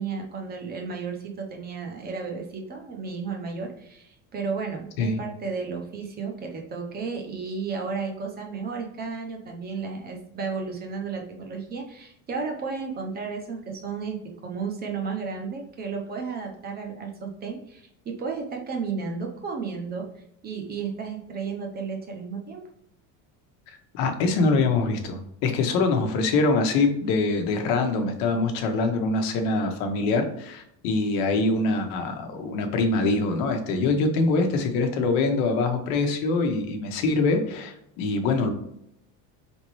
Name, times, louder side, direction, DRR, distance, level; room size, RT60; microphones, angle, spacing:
voice 1, 0.0-20.1 20.4-22.6, right 5 dB, 25° right, 2 dB, 0.6 m, -33 dB
voice 2, 23.9-38.5, left 3 dB, 80° left, 5 dB, 1.0 m, -24 dB
4.2 x 3.5 x 3.1 m, 0.75 s
cardioid pair, 160°, 38 cm